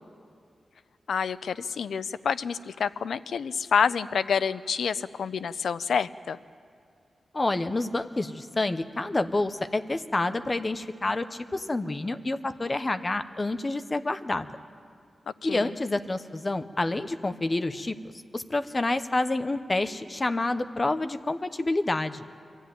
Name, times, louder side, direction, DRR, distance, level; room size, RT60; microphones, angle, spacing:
voice 1, 1.1-6.4 15.4-15.7, left 6 dB, 80° left, 15 dB, 0.5 m, -28 dB
voice 2, 7.3-14.5 15.4-18.0 18.3-22.2, left 2 dB, 25° left, 10 dB, 0.7 m, -28 dB
23.5 x 13.5 x 9.3 m, 2.3 s
wide cardioid pair, 160°, 0 cm